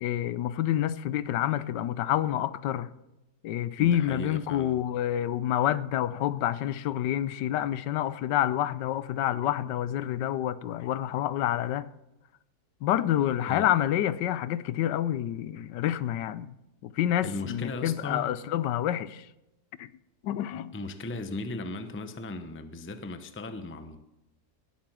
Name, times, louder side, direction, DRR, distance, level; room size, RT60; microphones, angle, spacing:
voice 1, 0.0-2.9 3.4-11.9 12.8-16.5 16.8-19.3 19.8-19.9 20.2-20.7, left 11 dB, 85° left, 16 dB, 1.3 m, -28 dB
voice 2, 3.8-4.8 13.5-13.7 17.2-18.4 20.7-24.0, left 2 dB, 15° left, 9 dB, 0.5 m, -37 dB
18.0 x 8.4 x 6.1 m, 0.95 s
omnidirectional pair, 1.8 m